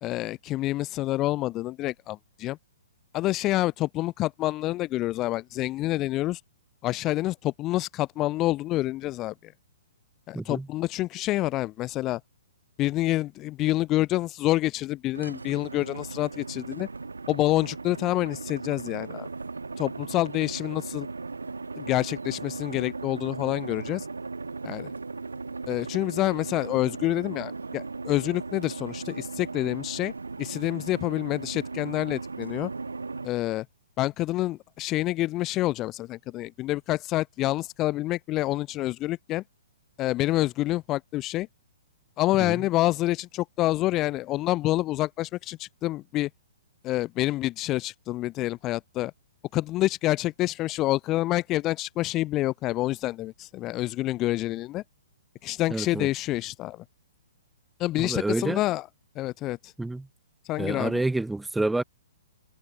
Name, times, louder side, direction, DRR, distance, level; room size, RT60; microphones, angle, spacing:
voice 1, 0.0-2.6 3.1-6.4 6.8-9.5 10.3-12.2 12.8-16.9 17.3-19.3 19.8-21.1 21.8-24.1 24.6-24.9 25.7-30.1 30.4-32.7 33.2-33.7 34.0-39.4 40.0-41.5 42.2-46.3 46.8-49.1 49.5-54.8 55.4-56.8 57.8-58.9 59.1-59.7 60.4-61.0, left 16 dB, 25° left, 1.0 m, -27 dB
voice 2, 10.3-10.7 42.4-42.6 55.7-56.1 58.0-58.6 59.8-60.1 60.6-61.8, right 2 dB, 5° right, 0.3 m, -28 dB
sound 1, 15.1-33.3, right 4 dB, 75° right, 3.6 m, -37 dB
figure-of-eight pair, 120°, 0 cm